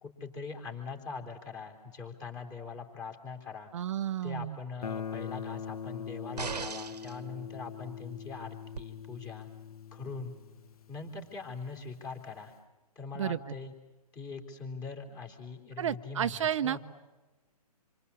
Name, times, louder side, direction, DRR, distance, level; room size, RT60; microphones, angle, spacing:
voice 1, 0.0-3.7 4.2-9.5 9.9-10.3 10.9-12.6 13.0-13.7 14.1-16.8, left 4 dB, 20° left, 3 dB, 3.7 m, -42 dB
voice 2, 3.7-4.6 13.1-13.4 15.8-16.8, right 10 dB, 50° right, 9 dB, 0.8 m, -31 dB
Guitar, 4.8-11.5, left 7 dB, 70° left, 0.9 m, -42 dB
sound 1, 6.4-7.2 8.8-8.9, right 5 dB, 90° right, 1.4 m, -37 dB
27.5 x 24.5 x 8.4 m, 1.2 s
hypercardioid pair, 145°, 20 cm